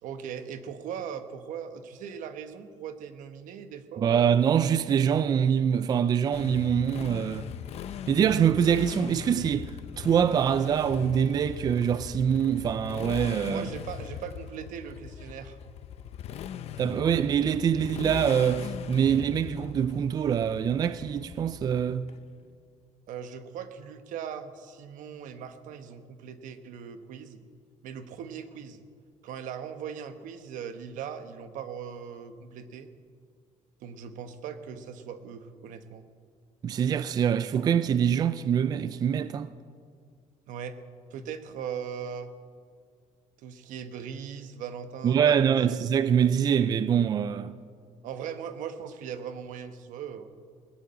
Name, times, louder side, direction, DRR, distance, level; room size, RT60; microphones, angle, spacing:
voice 1, 0.0-4.3 13.5-15.6 23.1-27.4 27.8-28.8 29.2-32.9 33.8-36.0 40.5-40.8 41.1-42.3 43.4-45.4 45.7-45.8 48.0-50.3, right 7 dB, 85° right, 1.1 m, -39 dB
voice 2, 4.0-7.5 8.1-13.7 16.8-22.1 36.6-39.5 45.0-47.5, right 8 dB, 30° right, 0.4 m, -24 dB
Motorcycle, 6.3-22.1, left 9 dB, 55° left, 0.6 m, -40 dB
19.5 x 8.5 x 8.7 m
cardioid pair, 175°, 13 cm